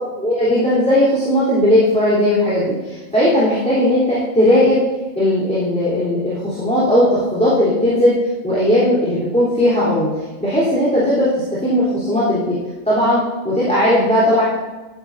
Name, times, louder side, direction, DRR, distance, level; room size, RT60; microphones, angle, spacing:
voice 1, 0.0-4.8 5.2-8.1 8.4-10.1 10.4-12.6 12.9-14.4, left 1 dB, 5° left, -10 dB, 3.5 m, -17 dB
14.0 x 10.0 x 2.6 m, 1.2 s
omnidirectional pair, 1.4 m